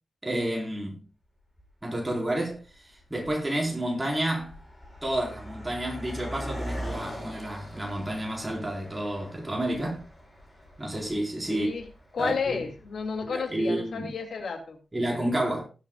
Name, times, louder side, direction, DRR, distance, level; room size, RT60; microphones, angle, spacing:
voice 1, 0.2-1.0 1.8-4.6 5.0-10.0 10.8-11.7 12.2-12.6 13.2-14.1 14.9-15.6, right 1 dB, 15° right, 4.5 m, -30 dB
Car passing by, 1.6-1.7 2.5-2.7 3.0-13.4, equal, 15° left, 6.5 m, -41 dB
voice 2, 11.5-11.9 12.1-14.8, left 5 dB, 80° left, 2.5 m, -32 dB
19.5 x 9.0 x 2.3 m
wide cardioid pair, 150°, 0 cm